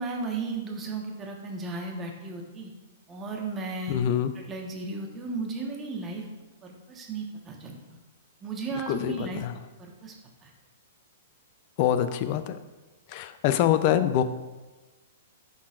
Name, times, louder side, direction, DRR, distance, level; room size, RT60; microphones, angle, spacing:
voice 1, 0.0-2.7 3.1-4.0 4.3-6.3 6.6-7.8 8.4-9.4 9.8-10.1 10.4-10.5, right 3 dB, 20° right, 0 dB, 1.2 m, -35 dB
voice 2, 3.9-4.3 8.9-9.5 11.8-12.6 13.1-14.2, left 10 dB, 45° left, 11 dB, 0.5 m, -25 dB
11.0 x 3.8 x 2.5 m, 1.2 s
hypercardioid pair, 120°, 0 cm